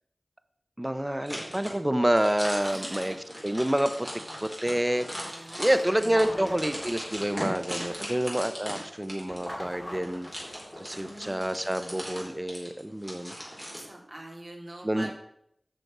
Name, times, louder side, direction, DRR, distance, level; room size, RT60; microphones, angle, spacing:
voice 1, 0.8-3.2 3.4-4.1 4.4-10.3 10.8-13.3 14.8-15.1, right 1 dB, 15° right, 11 dB, 0.7 m, -28 dB
sound 1, 1.3-13.8, equal, 10° left, 4.4 m, -39 dB
voice 2, 2.6-3.2 5.2-6.5 7.8-8.3 10.9-11.6 13.7-15.1, right 1 dB, 35° right, 0 dB, 2.6 m, -44 dB
sound 2, 6.0-8.2 9.3-11.8, equal, 25° left, 2.3 m, -44 dB
8.0 x 6.3 x 6.1 m, 0.74 s
wide cardioid pair, 45°, 0 cm